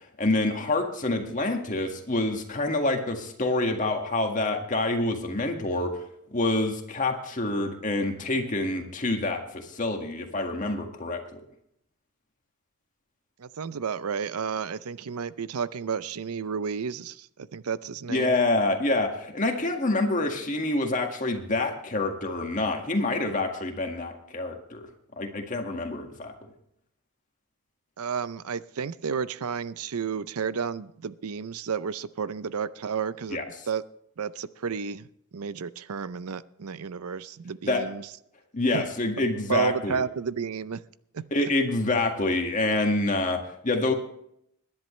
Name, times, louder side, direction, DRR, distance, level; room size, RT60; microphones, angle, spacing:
voice 1, 0.0-11.4 18.1-24.8 25.2-26.3 33.3-33.4 37.7-37.8 38.5-40.0 41.3-43.9, left 2 dB, 35° left, 4 dB, 1.8 m, -27 dB
voice 2, 13.4-18.4 28.0-33.4 33.7-33.8 34.2-35.1 35.3-38.1 38.7-38.8 39.5-40.8 41.1-41.5, right 6 dB, 85° right, 16 dB, 0.6 m, -32 dB
21.0 x 10.5 x 3.2 m, 0.73 s
head